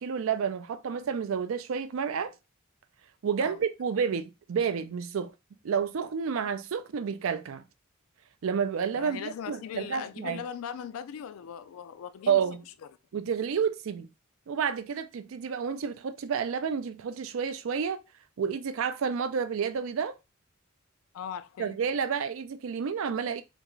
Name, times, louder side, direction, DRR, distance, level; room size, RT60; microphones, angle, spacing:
voice 1, 0.0-2.4 3.2-5.3 5.6-7.6 8.4-10.4 12.3-12.6 13.1-14.1 14.5-18.0 18.4-20.2 21.6-23.4, right 6 dB, 70° right, 0.4 m, -30 dB
voice 2, 8.9-12.4 21.1-21.8, left 8 dB, 80° left, 0.3 m, -39 dB
3.5 x 2.4 x 3.0 m
head